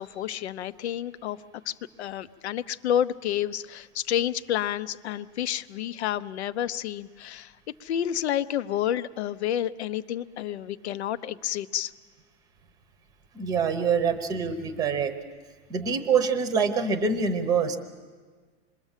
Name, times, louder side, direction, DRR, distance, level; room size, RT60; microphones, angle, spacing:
voice 1, 0.0-1.4 1.7-7.5 7.8-11.9, left 10 dB, 80° left, 14 dB, 0.9 m, -30 dB
voice 2, 13.3-15.1 15.7-17.8, right 5 dB, 10° right, 9 dB, 0.9 m, -25 dB
26.5 x 22.0 x 7.4 m, 1.5 s
supercardioid pair, 180°, 33 cm